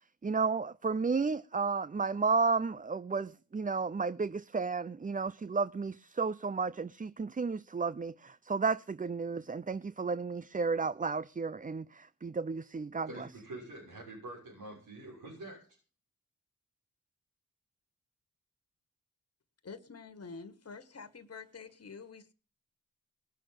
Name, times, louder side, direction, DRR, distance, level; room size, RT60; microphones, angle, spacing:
voice 1, 0.2-13.1, right 4 dB, 25° right, 0.6 m, -32 dB
voice 2, 13.1-15.7, right 2 dB, 80° right, 6.7 m, -46 dB
voice 3, 19.6-22.3, left 4 dB, 45° left, 1.8 m, -47 dB
19.5 x 6.6 x 7.3 m
supercardioid pair, 45°, 35 cm